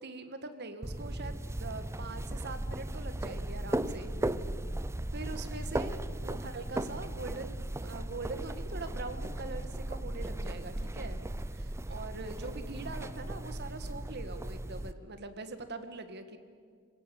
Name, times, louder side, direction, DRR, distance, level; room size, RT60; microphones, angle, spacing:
voice 1, 0.0-4.1 5.1-11.2 11.5-16.4, right 3 dB, 50° right, 9 dB, 1.7 m, -43 dB
sound 1, 0.8-14.9, right 1 dB, 15° right, 0.5 m, -37 dB
26.0 x 17.0 x 8.5 m, 2.1 s
head